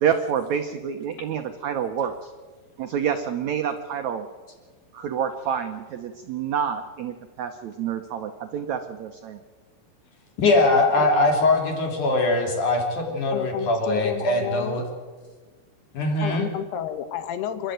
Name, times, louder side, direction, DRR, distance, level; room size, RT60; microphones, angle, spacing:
voice 1, 0.0-2.3 2.8-4.3 4.9-9.4, right 8 dB, 80° right, 6 dB, 1.6 m, -28 dB
voice 2, 10.4-14.8 15.9-16.5, left 2 dB, 50° left, 2 dB, 4.5 m, -22 dB
voice 3, 13.3-14.8 16.2-17.7, left 9 dB, 85° left, 10 dB, 3.3 m, -30 dB
27.5 x 11.5 x 9.2 m, 1.4 s
omnidirectional pair, 4.6 m